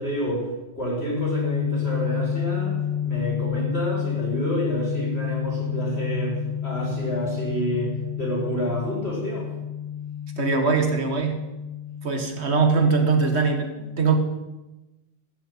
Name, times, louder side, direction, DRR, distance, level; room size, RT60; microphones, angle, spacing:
voice 1, 0.0-9.5, equal, 75° left, -2 dB, 4.6 m, -29 dB
sound 1, 1.1-13.4, left 9 dB, 45° left, 2.6 m, -30 dB
voice 2, 10.4-11.4 12.0-14.2, right 5 dB, 85° right, 5 dB, 1.9 m, -22 dB
14.5 x 6.5 x 8.9 m, 1.0 s
omnidirectional pair, 1.1 m